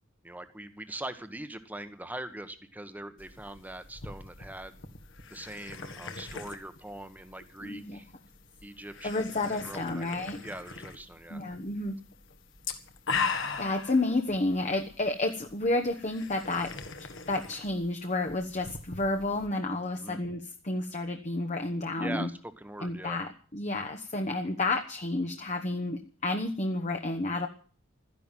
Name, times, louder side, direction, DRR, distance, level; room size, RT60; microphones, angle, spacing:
voice 1, 0.2-4.8 5.3-8.1 8.6-11.4 19.9-20.2 22.0-23.2, right 1 dB, 10° right, 9 dB, 1.3 m, -42 dB
sound 1, 3.2-19.5, left 5 dB, 60° left, 1.8 m, -40 dB
voice 2, 7.6-8.0 9.0-10.4 11.3-12.0 13.6-16.7 17.3-22.3 22.8-27.5, left 2 dB, 35° left, 4 dB, 1.2 m, -30 dB
13.0 x 11.0 x 9.0 m, 0.43 s
head